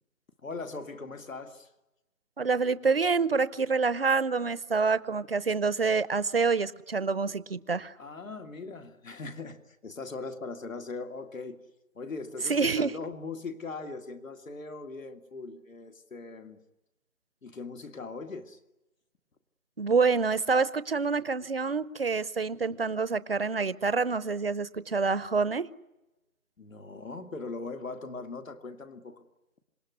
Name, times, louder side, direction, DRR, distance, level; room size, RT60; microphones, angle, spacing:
voice 1, 0.4-1.7 8.0-11.6 11.9-16.6 17.4-18.6 26.6-29.2, left 3 dB, 65° left, 6 dB, 2.4 m, -40 dB
voice 2, 2.4-7.9 12.5-12.9 19.8-25.7, right 4 dB, 45° right, 17 dB, 0.8 m, -27 dB
26.5 x 21.0 x 9.6 m, 0.99 s
hypercardioid pair, 180°, 43 cm